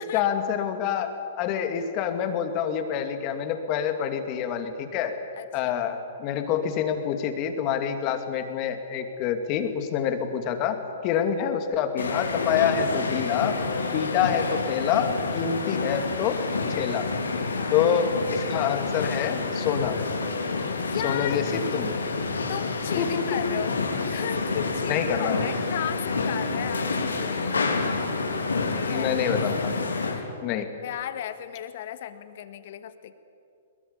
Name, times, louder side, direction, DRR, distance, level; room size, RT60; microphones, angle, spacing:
voice 1, 0.0-5.2 5.5-13.6 13.9-16.4 16.8-17.1 17.7-20.0 21.0-21.9 23.0-23.6 24.9-25.5 28.9-29.7 30.4-30.7, left 8 dB, 40° left, 7 dB, 2.7 m, -27 dB
voice 2, 5.4-5.7 11.1-11.6 17.5-17.8 20.5-21.4 22.5-27.8 28.7-29.1 30.1-33.1, left 11 dB, 55° left, 11 dB, 1.7 m, -36 dB
Shopping Mall escalator, 12.0-30.2, left 3 dB, 90° left, 3.5 m, -28 dB
21.5 x 21.0 x 9.9 m, 2.5 s
hypercardioid pair, 125°, 0 cm